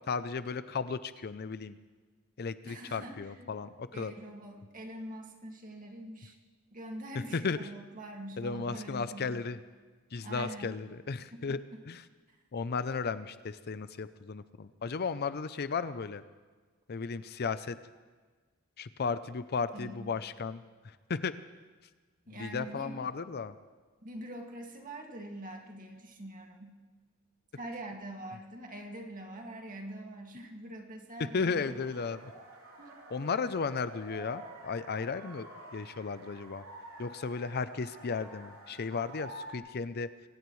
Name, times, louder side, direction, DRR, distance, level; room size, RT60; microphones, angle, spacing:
voice 1, 0.1-1.8 2.4-4.1 7.1-7.7 8.4-9.6 10.1-11.6 11.8-12.1 12.5-16.2 16.9-17.8 18.8-21.4 22.3-23.6 31.3-32.3 33.1-36.6 37.0-40.1, left 5 dB, 50° left, 13 dB, 0.5 m, -35 dB
voice 2, 2.6-3.5 3.9-6.4 6.7-9.4 10.2-10.8 11.3-11.4 12.3-12.4 13.0-13.1 19.7-20.1 22.3-23.0 24.0-26.8 27.6-31.7 32.8-33.0, right 1 dB, 40° right, 1 dB, 2.2 m, -44 dB
sound 1, 31.4-39.6, right 1 dB, 80° right, 3.3 m, -49 dB
25.0 x 16.0 x 3.2 m, 1.4 s
head